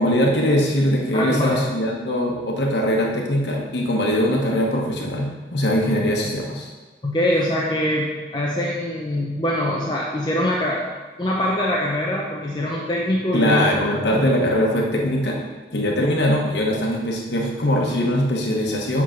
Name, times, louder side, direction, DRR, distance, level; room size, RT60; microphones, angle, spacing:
voice 1, 0.0-6.7 13.3-15.4 15.7-19.0, equal, 75° left, -1 dB, 1.1 m, -21 dB
voice 2, 1.1-1.7 7.0-8.1 8.3-10.8 11.2-13.7, left 1 dB, 25° left, -3 dB, 0.6 m, -23 dB
7.7 x 3.7 x 5.8 m, 1.3 s
head